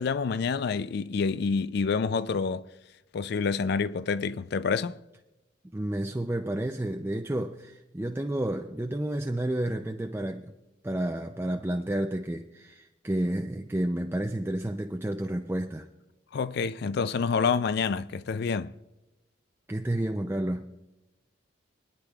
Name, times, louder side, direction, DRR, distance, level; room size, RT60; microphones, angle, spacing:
voice 1, 0.0-2.7 3.1-5.0 16.3-18.7, left 5 dB, 55° left, 0.4 m, -28 dB
voice 2, 5.7-10.5 10.8-15.9 19.7-20.6, right 1 dB, 10° right, 0.4 m, -30 dB
25.5 x 9.9 x 2.4 m
head